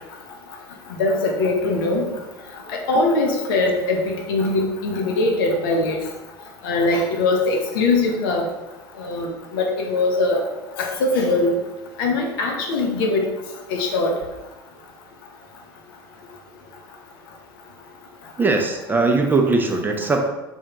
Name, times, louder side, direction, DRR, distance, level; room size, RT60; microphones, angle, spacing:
voice 1, 1.0-2.1 2.7-6.0 6.6-8.5 9.0-10.5 10.8-11.5 12.0-13.3 13.7-14.1, left 2 dB, 65° left, 1 dB, 0.6 m, -21 dB
voice 2, 18.4-20.3, right 3 dB, 15° right, 3 dB, 0.4 m, -20 dB
3.4 x 2.2 x 2.9 m, 1.0 s
figure-of-eight pair, 70°, 12 cm